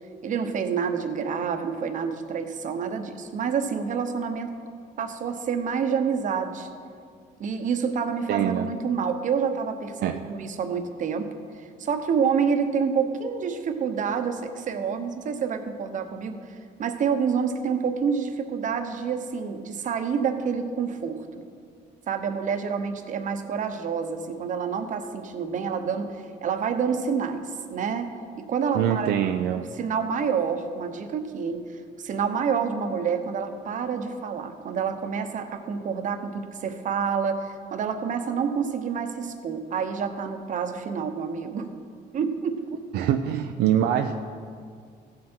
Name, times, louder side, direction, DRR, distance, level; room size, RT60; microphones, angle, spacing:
voice 1, 0.2-4.5 5.0-6.7 7.4-11.3 11.5-21.4 22.1-26.1 26.4-28.1 28.5-29.1 29.6-31.6 32.0-41.7 42.1-42.6, right 6 dB, 50° right, 7 dB, 1.0 m, -28 dB
voice 2, 8.3-8.7 10.0-10.2 28.7-29.6 42.9-44.1, right 10 dB, 75° right, 6 dB, 0.5 m, -24 dB
15.0 x 7.6 x 4.5 m, 2.2 s
cardioid pair, 110°, 17 cm